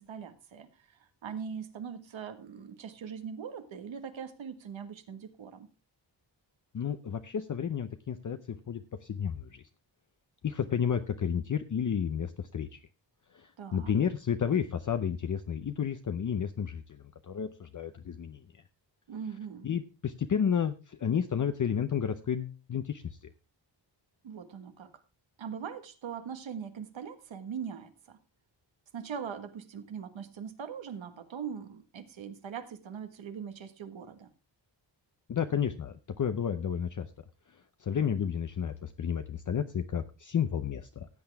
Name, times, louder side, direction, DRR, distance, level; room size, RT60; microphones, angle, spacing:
voice 1, 0.0-5.7 13.6-13.9 19.1-19.7 24.2-24.9 25.4-28.2 28.9-34.3, right 7 dB, 85° right, 8 dB, 1.6 m, -41 dB
voice 2, 6.7-9.6 10.4-12.8 13.3-18.4 19.6-23.2 35.3-37.1 37.8-41.1, left 8 dB, 40° left, 8 dB, 0.7 m, -31 dB
16.0 x 8.6 x 3.4 m, 0.30 s
wide cardioid pair, 140°, 45 cm